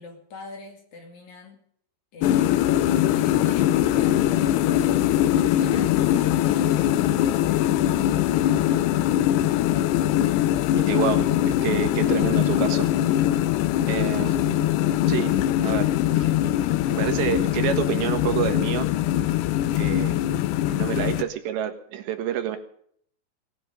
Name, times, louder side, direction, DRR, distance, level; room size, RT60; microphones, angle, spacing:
voice 1, 0.0-1.6 2.1-5.0 5.4-9.0, left 3 dB, 50° left, 4 dB, 3.4 m, -44 dB
sound 1, 2.2-21.2, left 12 dB, 80° left, 2.8 m, -22 dB
voice 2, 10.7-12.9 13.9-14.7 15.1-15.4 15.6-18.9 19.8-20.2 20.7-22.6, right 10 dB, 85° right, 8 dB, 3.8 m, -28 dB
19.0 x 10.5 x 6.7 m, 0.63 s
omnidirectional pair, 4.9 m